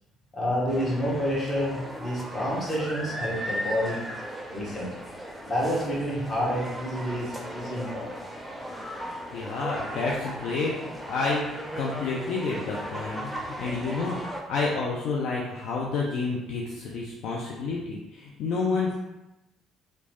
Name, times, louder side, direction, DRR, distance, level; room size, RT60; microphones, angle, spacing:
voice 1, 0.3-4.0 4.5-4.9 5.4-8.2, equal, 35° left, -6 dB, 1.3 m, -29 dB
sound 1, 0.7-14.4, equal, 5° right, 0.6 m, -37 dB
voice 2, 9.3-10.7 11.1-14.2 14.5-19.0, left 4 dB, 65° left, -3 dB, 0.4 m, -29 dB
3.0 x 2.1 x 2.9 m, 0.96 s
hypercardioid pair, 50°, 0 cm